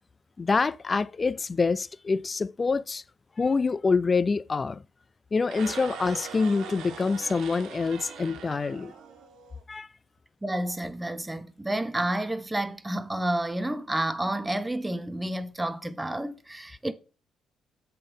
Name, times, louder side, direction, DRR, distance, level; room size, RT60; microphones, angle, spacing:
voice 1, 0.4-3.0 3.4-4.8 5.3-8.9 9.7-9.9, left 4 dB, 30° left, 0.4 m, -26 dB
sound 1, 5.4-9.6, right 6 dB, 80° right, 1.5 m, -41 dB
voice 2, 10.4-16.9, right 1 dB, 10° right, 0.9 m, -30 dB
7.5 x 4.5 x 5.1 m
cardioid pair, 90°, 0 cm